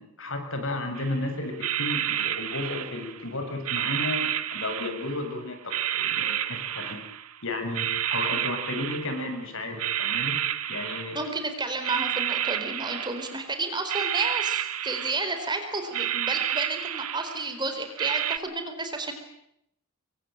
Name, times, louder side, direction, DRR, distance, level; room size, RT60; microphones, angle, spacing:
voice 1, 0.0-7.0 7.4-10.4 10.7-11.2, left 2 dB, 60° left, 6 dB, 6.7 m, -33 dB
sound 1, 1.0-1.2 1.6-3.3 3.6-5.3 5.7-7.4 7.7-9.4 9.7-11.4 11.8-13.5 13.9-15.6 15.8-17.6 18.0-18.4, right 10 dB, 85° right, 1.7 m, -30 dB
voice 2, 11.1-19.1, right 3 dB, 20° right, 6 dB, 4.3 m, -31 dB
26.5 x 23.5 x 9.0 m, 0.77 s
head